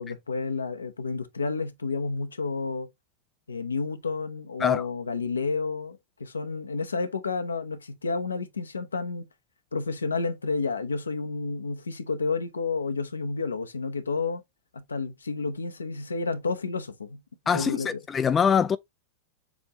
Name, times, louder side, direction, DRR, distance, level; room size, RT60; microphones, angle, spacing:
voice 1, 0.0-2.9 3.5-9.3 9.7-14.4 14.7-17.2 17.5-18.0, left 4 dB, 75° left, 0.7 m, -30 dB
voice 2, 17.5-18.8, left 7 dB, 20° left, 0.3 m, -23 dB
7.0 x 2.5 x 2.9 m
figure-of-eight pair, 90°, 0 cm